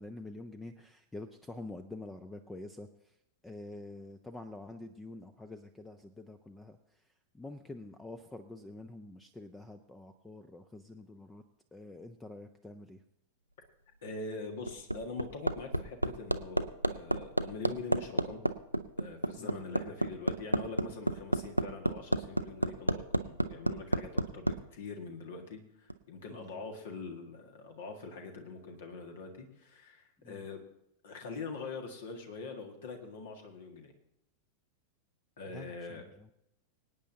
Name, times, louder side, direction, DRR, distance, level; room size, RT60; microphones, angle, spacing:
voice 1, 0.0-2.9 3.4-6.8 7.3-11.4 11.7-13.0 19.4-19.6 26.3-26.5 30.2-30.4 35.5-36.3, left 2 dB, 10° left, 10 dB, 0.6 m, -47 dB
voice 2, 14.0-18.4 19.0-30.6 31.0-33.9 35.4-36.0, left 4 dB, 60° left, 4 dB, 1.8 m, -43 dB
Hammer, 14.4-24.6 25.9-26.0, right 1 dB, 90° right, 0.5 m, -30 dB
25.0 x 9.1 x 2.8 m, 0.80 s
figure-of-eight pair, 90°, 0 cm